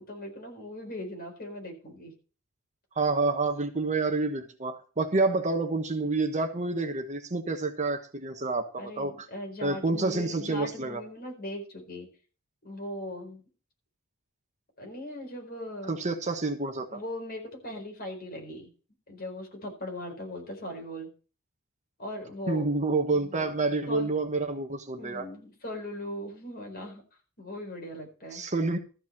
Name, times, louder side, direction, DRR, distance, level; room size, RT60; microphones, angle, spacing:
voice 1, 0.0-2.1 8.8-12.1 12.6-13.4 14.8-16.0 16.9-18.7 19.1-21.1 22.0-22.7 23.1-23.5 23.9-24.1 25.0-27.0 27.4-28.5, left 1 dB, 45° left, 2 dB, 4.4 m, -39 dB
voice 2, 2.9-9.3 9.6-11.0 15.9-17.0 22.5-25.3 28.3-28.8, right 3 dB, 35° right, 7 dB, 1.2 m, -28 dB
13.5 x 5.3 x 7.3 m, 0.36 s
head